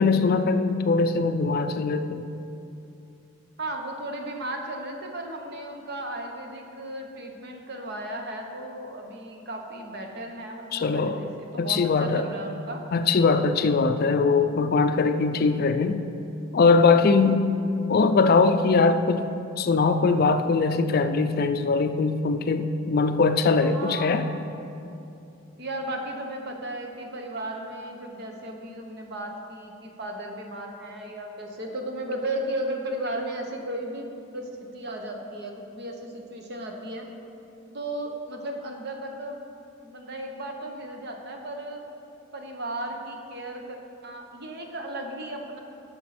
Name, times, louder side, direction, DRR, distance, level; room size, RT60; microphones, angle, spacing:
voice 1, 0.0-2.3 10.7-11.2 11.6-12.3 12.9-16.1 16.5-17.5 17.9-19.2 19.6-24.2, left 4 dB, 50° left, 9 dB, 0.4 m, -21 dB
voice 2, 3.6-12.8 23.6-24.2 25.6-34.1 34.3-37.1 37.7-39.4 39.8-41.8 42.3-43.8 44.0-45.6, right 1 dB, 55° right, 2 dB, 1.0 m, -35 dB
10.5 x 6.3 x 4.3 m, 2.7 s
head